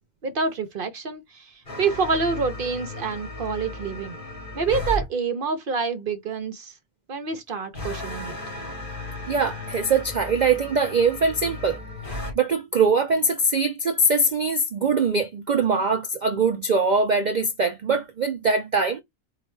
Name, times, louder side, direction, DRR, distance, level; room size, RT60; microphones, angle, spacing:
voice 1, 0.2-4.2 4.5-6.8 7.1-8.4, right 5 dB, 50° right, 0.7 m, -27 dB
sound 1, 1.7-5.1 7.7-12.3, left 1 dB, 35° left, 2.3 m, -35 dB
voice 2, 9.3-11.8 12.4-19.0, right 3 dB, 75° right, 0.4 m, -22 dB
4.6 x 2.4 x 3.1 m
omnidirectional pair, 1.5 m